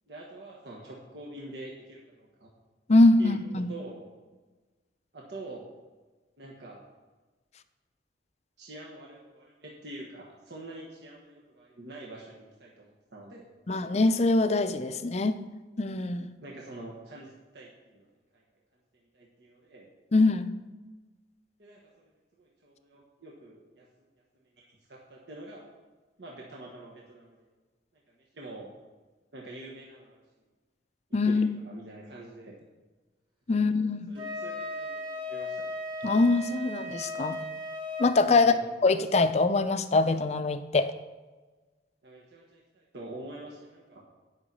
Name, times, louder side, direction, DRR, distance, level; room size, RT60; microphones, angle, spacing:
voice 1, 0.1-2.5 3.2-4.1 5.1-5.7 6.4-6.8 8.6-13.4 16.4-18.4 19.1-19.9 21.6-21.8 22.4-23.8 24.6-25.7 26.2-27.5 28.2-28.7 29.3-30.2 31.3-32.6 33.5-33.7 34.1-35.6 38.3-38.6 42.0-44.0, right 2 dB, 70° right, -3 dB, 1.3 m, -46 dB
voice 2, 2.9-3.7 13.7-15.4 15.8-16.3 20.1-20.5 31.1-31.6 33.5-34.1 36.0-37.4 38.0-38.5 38.8-40.9, left 3 dB, 35° left, 11 dB, 0.5 m, -23 dB
Wind instrument woodwind instrument, 34.2-38.1, left 1 dB, 25° right, 2.2 m, -36 dB
10.0 x 5.8 x 5.4 m, 1.3 s
head